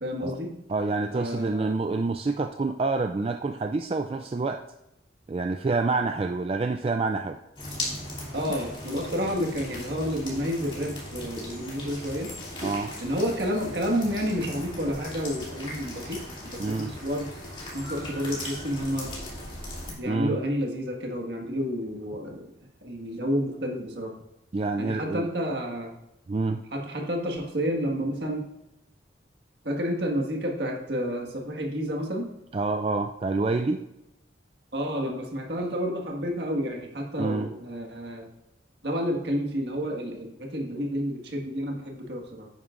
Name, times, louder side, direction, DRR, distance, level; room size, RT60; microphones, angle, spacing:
voice 1, 0.0-0.5 1.1-1.7 8.3-12.3 13.0-17.3 17.7-19.2 19.9-22.5 22.8-24.1 24.8-25.9 26.7-28.5 29.6-32.3 34.7-38.3 38.8-42.5, equal, 60° right, 0 dB, 1.7 m, -30 dB
voice 2, 0.7-4.6 5.3-7.4 12.6-12.9 16.6-16.9 20.1-20.4 24.5-25.3 26.3-26.6 32.5-33.8 37.2-37.5, right 3 dB, 30° right, 5 dB, 0.3 m, -27 dB
sound 1, 7.6-19.9, left 1 dB, 25° left, 2.7 m, -38 dB
11.0 x 9.5 x 2.5 m, 0.87 s
head